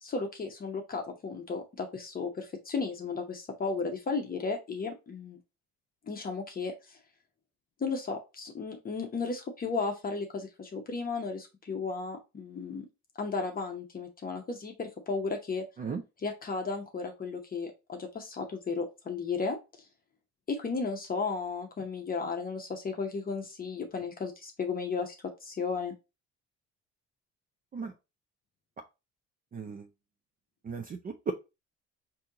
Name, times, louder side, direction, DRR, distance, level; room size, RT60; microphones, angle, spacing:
voice 1, 0.0-5.4 6.1-7.0 7.8-12.9 13.2-15.6 16.2-19.6 20.5-25.1 25.4-25.9, left 4 dB, 30° left, 3 dB, 0.8 m, -34 dB
voice 2, 29.5-29.9 30.6-31.3, right 5 dB, 30° right, 6 dB, 0.5 m, -35 dB
4.2 x 2.8 x 3.7 m, 0.26 s
cardioid pair, 115°, 29 cm